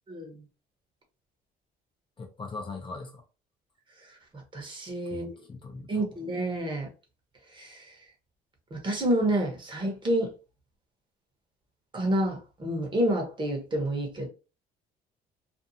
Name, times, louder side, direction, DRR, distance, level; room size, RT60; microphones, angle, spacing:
voice 1, 0.1-0.4 4.1-4.2 4.5-5.4 5.9-6.9 7.5-7.9 8.7-10.3 11.9-14.3, right 1 dB, 30° right, 1.0 m, -29 dB
voice 2, 2.2-3.2 5.1-6.1, left 3 dB, 30° left, 0.6 m, -40 dB
2.5 x 2.3 x 2.7 m
cardioid pair, 110°, 17 cm